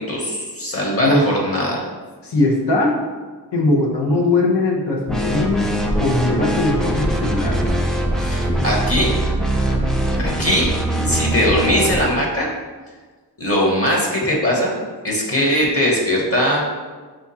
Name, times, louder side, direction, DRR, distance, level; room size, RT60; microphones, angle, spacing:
voice 1, 0.0-1.8 8.2-9.1 10.2-10.7 11.0-12.5 13.4-14.7 15.0-16.6, equal, 35° left, -2 dB, 1.3 m, -20 dB
voice 2, 2.2-3.0 3.5-5.7 6.0-7.6, left 2 dB, 75° left, -2 dB, 0.9 m, -19 dB
sound 1, 5.1-12.1, right 1 dB, ahead, 0.5 m, -21 dB
5.1 x 2.4 x 4.2 m, 1.4 s
cardioid pair, 55°, 41 cm